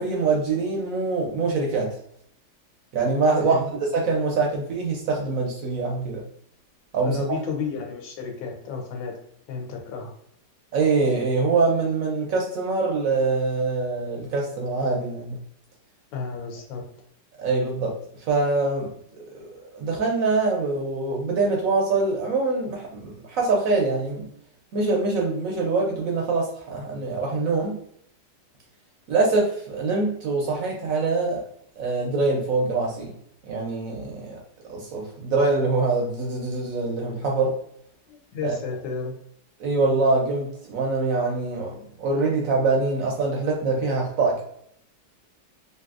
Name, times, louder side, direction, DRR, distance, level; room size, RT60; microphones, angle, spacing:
voice 1, 0.0-2.0 2.9-6.2 6.9-7.2 10.7-15.4 17.4-19.5 19.7-24.3 24.7-27.8 29.1-31.4 31.8-33.1 33.5-34.4 34.7-37.5 38.4-38.6 39.6-44.4, right 3 dB, 70° right, -1 dB, 0.8 m, -24 dB
voice 2, 7.0-9.1 9.5-10.1 16.1-16.8 38.1-39.1, left 5 dB, 85° left, 2 dB, 1.4 m, -32 dB
3.2 x 2.6 x 2.3 m, 0.70 s
omnidirectional pair, 1.9 m